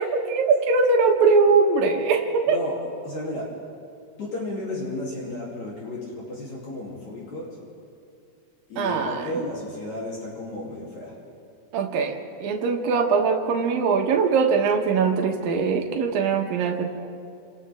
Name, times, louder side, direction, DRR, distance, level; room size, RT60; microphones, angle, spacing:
voice 1, 0.0-2.6 8.8-9.4 11.7-16.9, right 4 dB, 85° right, 2 dB, 3.1 m, -21 dB
voice 2, 2.5-2.8 3.0-3.5 4.2-7.6 8.7-11.1, left 1 dB, 55° left, -6 dB, 4.5 m, -33 dB
29.5 x 28.0 x 3.7 m, 2.5 s
omnidirectional pair, 4.0 m